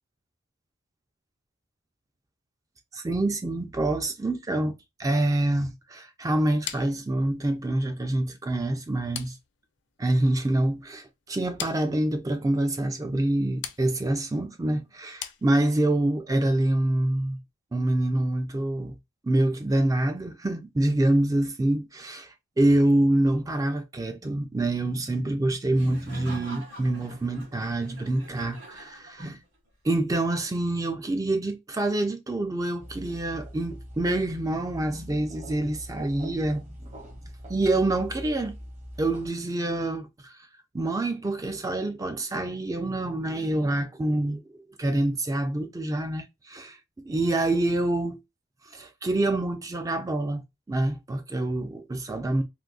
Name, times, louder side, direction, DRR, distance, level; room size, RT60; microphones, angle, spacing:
voice 1, 2.9-4.7 5.0-9.4 10.0-17.4 17.7-19.0 19.2-29.4 29.8-36.7 37.5-38.5 39.0-40.4 40.7-46.8 47.0-48.2 48.7-52.4, right 1 dB, 15° right, 0.3 m, -26 dB
sound 1, 6.7-16.0, left 10 dB, 60° left, 0.4 m, -43 dB
Laughter, 25.7-29.7, right 1 dB, 75° right, 1.9 m, -46 dB
sound 2, 32.8-39.3, equal, 35° right, 0.9 m, -43 dB
3.7 x 2.6 x 2.3 m
head